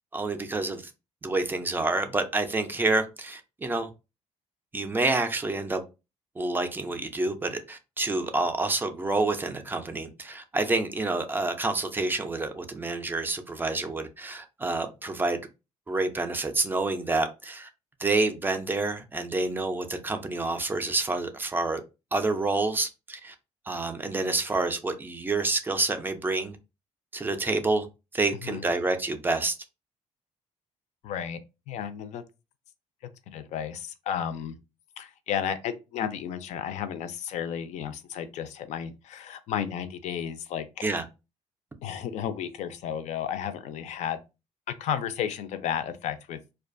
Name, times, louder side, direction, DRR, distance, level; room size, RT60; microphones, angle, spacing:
voice 1, 0.1-0.8 1.2-3.9 4.7-5.8 6.4-15.4 15.9-17.7 18.0-21.8 22.1-23.3 23.7-26.6 27.1-27.9 28.1-29.6 40.8-41.1, right 2 dB, 15° right, 0.3 m, -28 dB
voice 2, 31.0-31.4 31.7-32.2 33.3-34.5 35.0-40.8 41.8-44.2 44.8-46.4, left 9 dB, 70° left, 0.4 m, -33 dB
2.4 x 2.2 x 2.5 m
cardioid pair, 150°, 12 cm